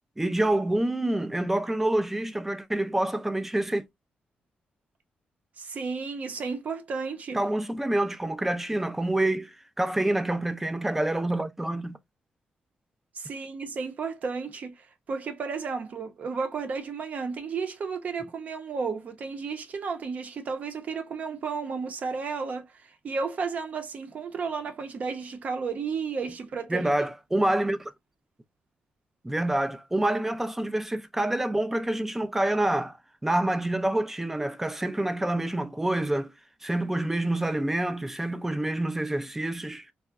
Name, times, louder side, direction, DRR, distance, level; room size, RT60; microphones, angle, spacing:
voice 1, 0.2-3.8 7.3-12.0 26.7-27.9 29.2-33.0 33.2-36.3 36.6-39.9, right 1 dB, 10° right, 0.3 m, -27 dB
voice 2, 5.6-7.4 13.1-26.9, right 5 dB, 50° right, 0.6 m, -33 dB
3.5 x 2.0 x 2.3 m
wide cardioid pair, 140°, 3 cm